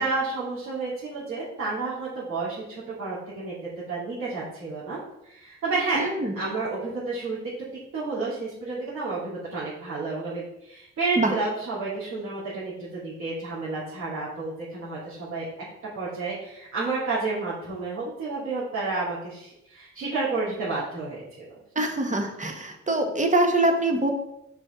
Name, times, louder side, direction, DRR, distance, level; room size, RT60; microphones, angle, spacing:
voice 1, 0.0-3.5 3.9-5.0 5.2-6.0 6.3-7.4 7.9-15.5 15.9-21.5, right 3 dB, 65° right, -9 dB, 3.0 m, -30 dB
voice 2, 5.9-6.3 11.2-11.3 21.7-24.1, right 2 dB, 25° right, 4 dB, 1.4 m, -24 dB
6.3 x 6.0 x 3.8 m, 0.84 s
cardioid pair, 90°, 30 cm